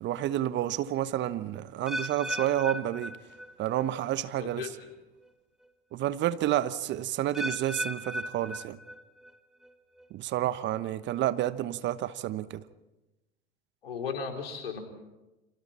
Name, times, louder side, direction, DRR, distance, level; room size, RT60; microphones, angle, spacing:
voice 1, 0.0-3.2 3.6-4.7 5.9-8.8 10.1-12.6, right 12 dB, 40° right, 1.0 m, -30 dB
sound 1, 1.9-3.9 4.1-4.6 5.2-5.3 7.3-9.3 9.6-10.1 10.7-10.8, equal, ahead, 1.5 m, -37 dB
voice 2, 4.4-4.7 13.8-14.8, left 6 dB, 80° left, 4.0 m, -35 dB
29.5 x 26.5 x 4.3 m
figure-of-eight pair, 80°, 29 cm